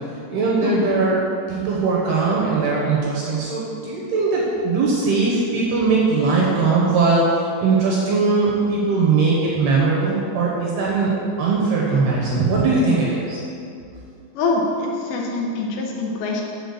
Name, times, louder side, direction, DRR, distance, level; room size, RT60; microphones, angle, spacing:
voice 1, 0.3-1.2 1.5-11.1 11.4-13.4, right 4 dB, 70° right, -4 dB, 2.5 m, -20 dB
voice 2, 14.3-16.4, left 3 dB, 75° left, -1 dB, 3.0 m, -24 dB
8.0 x 4.4 x 7.0 m, 2.5 s
omnidirectional pair, 5.4 m